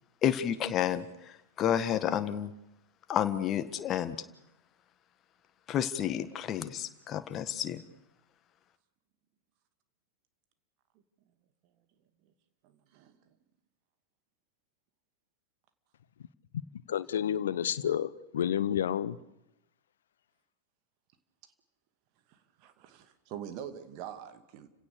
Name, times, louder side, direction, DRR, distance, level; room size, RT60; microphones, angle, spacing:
voice 1, 0.2-2.5 3.1-4.2 5.7-7.8, left 10 dB, 30° left, 1.6 m, -30 dB
voice 2, 12.6-13.3 22.3-24.7, right 9 dB, 45° right, 2.3 m, -45 dB
voice 3, 16.9-19.2, left 9 dB, 65° left, 0.9 m, -30 dB
30.0 x 17.0 x 6.7 m
figure-of-eight pair, 90°, 0 cm